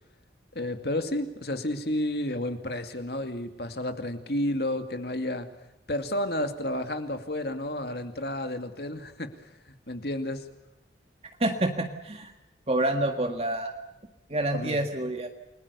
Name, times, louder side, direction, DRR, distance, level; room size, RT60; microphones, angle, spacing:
voice 1, 0.5-5.5 5.9-9.3 9.7-10.5 14.5-14.8, left 1 dB, 60° left, 7 dB, 2.4 m, -31 dB
voice 2, 11.4-12.3 12.7-13.7 14.3-15.3, right 1 dB, 35° right, 4 dB, 1.7 m, -27 dB
29.5 x 20.5 x 6.9 m, 0.92 s
head